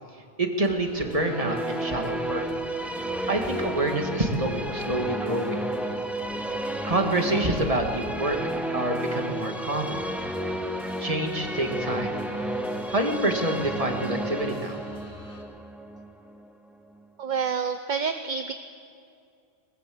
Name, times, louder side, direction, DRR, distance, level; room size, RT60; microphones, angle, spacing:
voice 1, 0.4-2.4 3.3-5.6 6.8-8.4 8.7-10.0 11.0-12.2 12.9-14.8, right 1 dB, 30° right, 3 dB, 2.3 m, -27 dB
sound 1, 0.6-15.4, left 2 dB, 65° left, 3.5 m, -48 dB
sound 2, 1.0-17.0, right 1 dB, ahead, 1.1 m, -32 dB
voice 2, 17.2-18.5, right 6 dB, 45° right, 8 dB, 0.9 m, -28 dB
22.0 x 20.5 x 7.9 m, 2.4 s
omnidirectional pair, 1.2 m